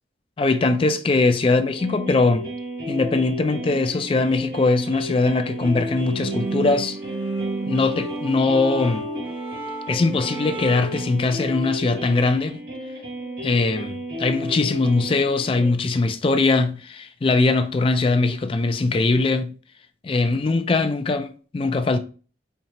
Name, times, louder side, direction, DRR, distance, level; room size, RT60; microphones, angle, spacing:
voice 1, 0.4-2.5 2.9-7.0 7.7-9.1 9.9-12.6 13.4-19.5 20.0-22.0, left 3 dB, 30° left, 0.3 m, -21 dB
sound 1, 1.8-15.7, equal, 50° right, 1.8 m, -33 dB
sound 2, 6.0-11.1, right 2 dB, 30° right, 0.7 m, -32 dB
4.5 x 2.8 x 2.8 m
head